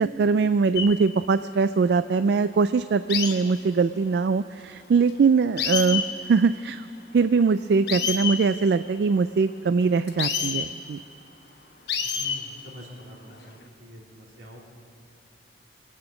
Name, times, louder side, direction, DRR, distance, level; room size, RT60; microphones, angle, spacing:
voice 1, 0.0-6.9 7.1-11.0, right 4 dB, 65° right, 12 dB, 0.3 m, -22 dB
sound 1, 0.7-0.9 3.1-3.3 5.1-5.2 5.6-6.1 7.9-8.4 10.1-10.7 11.9-12.4 13.3-13.6, left 6 dB, 65° left, 1.3 m, -27 dB
voice 2, 12.1-14.6, left 1 dB, 85° right, -3 dB, 3.5 m, -45 dB
24.0 x 8.8 x 6.0 m, 2.9 s
head